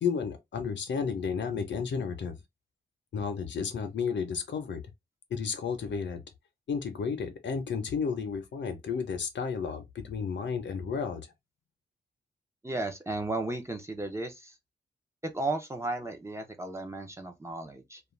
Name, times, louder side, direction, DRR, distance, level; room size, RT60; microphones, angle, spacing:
voice 1, 0.0-2.4 3.1-4.8 5.3-6.2 6.7-11.3, left 6 dB, 75° left, 0.7 m, -32 dB
voice 2, 12.6-14.5 15.2-18.0, right 2 dB, 15° right, 0.5 m, -34 dB
2.4 x 2.2 x 3.1 m
wide cardioid pair, 125°, 19 cm